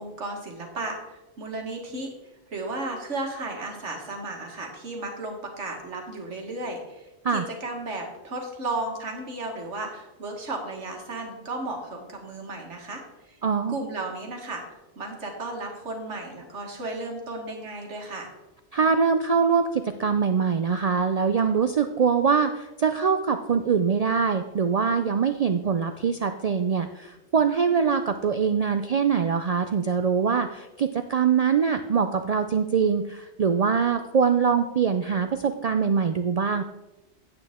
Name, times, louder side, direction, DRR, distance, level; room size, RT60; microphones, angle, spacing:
voice 1, 0.0-2.1 2.5-13.4 13.7-18.3, right 2 dB, 85° right, 1 dB, 2.0 m, -34 dB
voice 2, 13.4-13.8 18.7-36.6, right 6 dB, 65° right, 8 dB, 0.3 m, -23 dB
9.0 x 8.8 x 3.6 m, 1.0 s
omnidirectional pair, 1.2 m